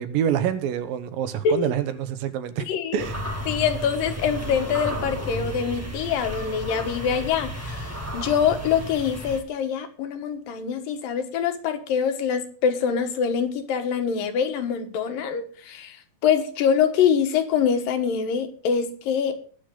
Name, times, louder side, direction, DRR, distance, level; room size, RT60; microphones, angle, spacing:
voice 1, 0.0-2.7 2.9-3.2, right 9 dB, 80° right, 2.9 m, -26 dB
voice 2, 2.7-3.1 3.5-16.0 16.2-19.3, left 7 dB, 75° left, 3.2 m, -24 dB
sound 1, 3.0-9.4, equal, 15° right, 0.4 m, -33 dB
20.0 x 7.0 x 3.8 m
omnidirectional pair, 4.0 m